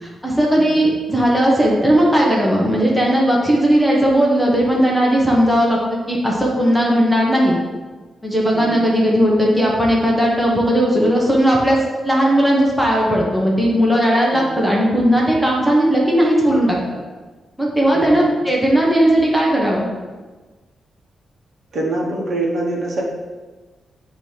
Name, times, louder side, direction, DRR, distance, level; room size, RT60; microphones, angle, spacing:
voice 1, 0.0-7.6 8.2-11.8 12.0-16.8 17.6-19.9, equal, ahead, -3 dB, 0.8 m, -16 dB
voice 2, 17.9-18.5 21.7-23.0, right 2 dB, 45° right, -2 dB, 1.1 m, -24 dB
7.5 x 2.8 x 4.7 m, 1.3 s
wide cardioid pair, 160°, 0 cm